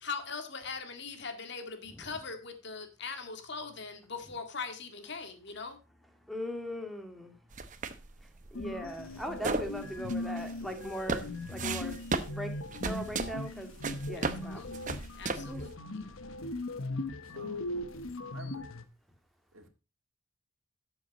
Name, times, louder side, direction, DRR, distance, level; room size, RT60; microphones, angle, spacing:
voice 1, 0.0-5.8 14.2-16.1, left 5 dB, 60° left, 1.9 m, -41 dB
voice 2, 6.3-7.4 8.5-11.9 12.3-12.5 12.8-13.7 14.1-14.7 15.5-15.7, equal, ahead, 1.9 m, -39 dB
sound 1, 7.5-15.7, right 3 dB, 40° right, 0.9 m, -36 dB
sound 2, 8.5-18.8, left 2 dB, 80° left, 1.1 m, -39 dB
voice 3, 17.2-17.7 18.2-18.7 19.5-19.7, right 2 dB, 85° right, 2.0 m, -50 dB
12.5 x 7.2 x 4.0 m
head